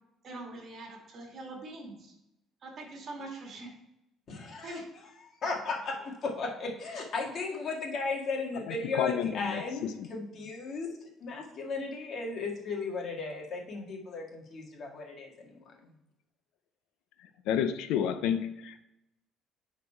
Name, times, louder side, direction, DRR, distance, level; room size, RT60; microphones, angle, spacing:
voice 1, 0.2-2.2 2.6-3.7 4.6-4.9, right 2 dB, 40° right, 0 dB, 2.1 m, -43 dB
voice 2, 4.3-4.8 5.4-15.6, left 3 dB, 45° left, 0 dB, 1.8 m, -36 dB
voice 3, 8.7-10.1 17.5-18.8, left 9 dB, 80° left, 10 dB, 0.6 m, -31 dB
9.3 x 4.2 x 4.4 m, 0.88 s
cardioid pair, 140°, 0 cm